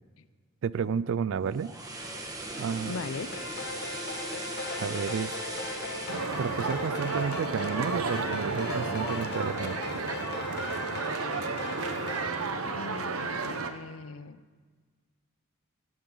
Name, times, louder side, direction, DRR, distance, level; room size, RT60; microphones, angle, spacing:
voice 1, 0.6-1.7 2.6-2.9 4.8-5.3 6.4-9.8, right 6 dB, 65° right, 19 dB, 0.4 m, -31 dB
sound 1, 1.3-7.5 7.9-8.1, right 2 dB, 15° right, 1.5 m, -39 dB
voice 2, 2.8-3.3 12.6-14.4, left 4 dB, 70° left, 15 dB, 0.6 m, -39 dB
sound 2, 3.1-12.3, left 3 dB, 50° left, 1.4 m, -38 dB
sound 3, 6.1-13.7, right 4 dB, 85° right, 0.9 m, -32 dB
18.0 x 17.0 x 3.9 m, 1.5 s
head